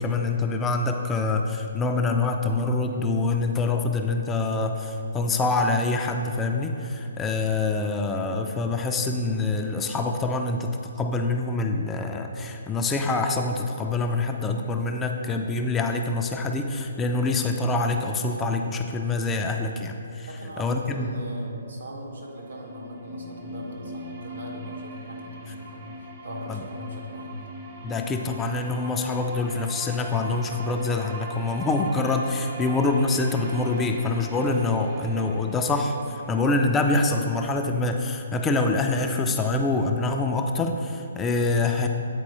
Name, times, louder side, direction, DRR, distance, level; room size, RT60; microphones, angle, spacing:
voice 1, 0.0-10.7 11.0-20.3 20.6-21.1 27.8-41.9, left 3 dB, 15° left, 3 dB, 0.3 m, -25 dB
voice 2, 20.3-27.5 32.6-32.7, left 1 dB, 70° right, -1 dB, 1.3 m, -39 dB
sound 1, 22.0-37.9, right 2 dB, 35° right, 0.8 m, -41 dB
8.3 x 4.2 x 3.2 m, 2.7 s
figure-of-eight pair, 135°, 0 cm